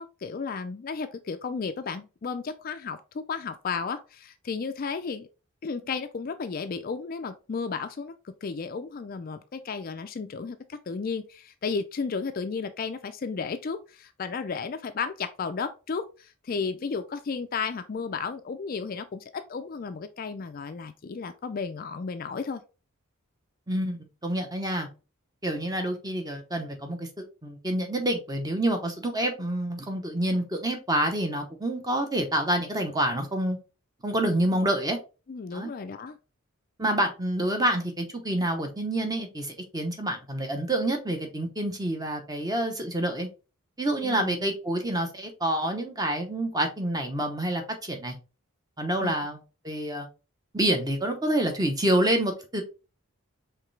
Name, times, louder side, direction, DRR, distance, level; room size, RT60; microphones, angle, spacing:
voice 1, 0.0-5.3 5.6-22.6 35.3-36.2 44.0-44.5 49.0-49.1, left 5 dB, 40° left, 0.3 m, -33 dB
voice 2, 23.7-24.9 25.4-33.6 34.0-35.0 35.5-35.7 36.8-43.3 43.8-48.2 48.8-49.4 49.6-50.1 50.5-52.6, right 1 dB, 15° right, 0.8 m, -27 dB
4.8 x 3.2 x 3.3 m
head